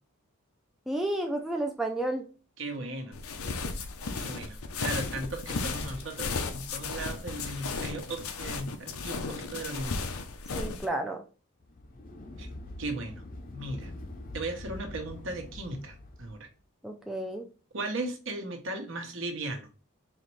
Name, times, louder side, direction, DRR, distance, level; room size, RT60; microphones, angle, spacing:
voice 1, 0.9-2.2 10.6-11.2 16.8-17.4, right 1 dB, ahead, 2 dB, 0.4 m, -31 dB
voice 2, 2.6-3.1 4.2-10.1 12.4-12.5 12.8-13.2 13.5-13.9 14.3-16.5 17.7-19.7, right 2 dB, 60° right, 5 dB, 1.0 m, -37 dB
sound 1, 3.1-10.9, left 4 dB, 85° left, 0.7 m, -35 dB
sound 2, 11.6-16.5, left 1 dB, 40° left, 0.6 m, -44 dB
4.1 x 3.0 x 3.2 m, 0.35 s
head